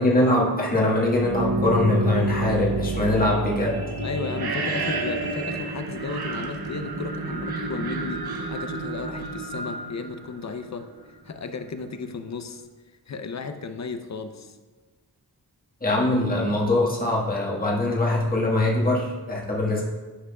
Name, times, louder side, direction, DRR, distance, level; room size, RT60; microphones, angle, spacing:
voice 1, 0.0-3.8 15.8-19.8, left 1 dB, 25° left, -4 dB, 1.6 m, -22 dB
sound 1, 1.1-10.9, right 2 dB, 70° right, 1.0 m, -29 dB
voice 2, 4.0-10.9 11.3-12.7 13.1-14.5, left 4 dB, 45° left, 8 dB, 0.6 m, -34 dB
11.0 x 6.0 x 2.3 m, 1.4 s
wide cardioid pair, 115°, 38 cm